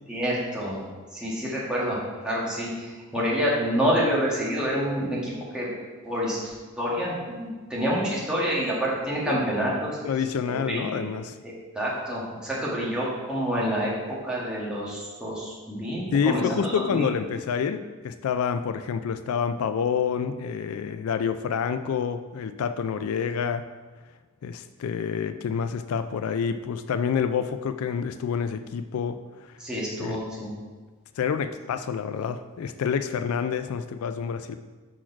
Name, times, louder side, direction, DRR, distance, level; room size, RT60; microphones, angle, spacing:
voice 1, 0.1-0.8 1.1-5.7 6.0-10.0 10.4-11.1 11.4-17.1 29.6-30.5, equal, 5° right, -6 dB, 1.6 m, -28 dB
voice 2, 10.0-11.4 16.1-23.6 24.4-29.5 30.0-30.2 31.2-34.6, left 6 dB, 75° left, 10 dB, 0.3 m, -28 dB
6.0 x 4.3 x 5.7 m, 1.4 s
head